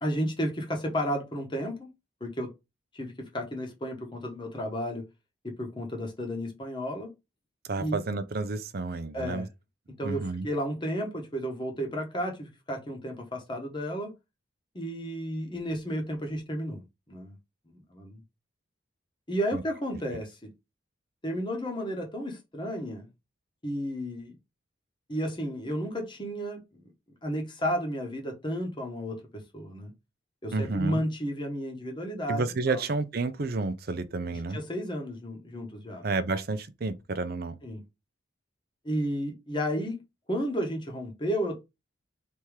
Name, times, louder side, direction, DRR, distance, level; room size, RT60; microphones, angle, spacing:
voice 1, 0.0-1.9 2.2-2.5 2.9-5.1 5.4-7.1 7.8-8.0 9.1-9.5 10.0-14.1 14.7-16.8 17.1-17.3 17.7-18.2 19.3-20.5 21.2-23.1 23.6-24.3 25.1-26.9 27.2-29.9 30.4-32.8 34.3-36.0 37.6-37.8 38.8-40.0 40.3-41.6, equal, 25° left, 1.1 m, -32 dB
voice 2, 7.7-9.5 10.0-10.5 19.5-19.6 30.5-31.0 32.3-34.6 36.0-37.6, right 3 dB, 50° right, 0.5 m, -30 dB
3.5 x 2.9 x 4.6 m
head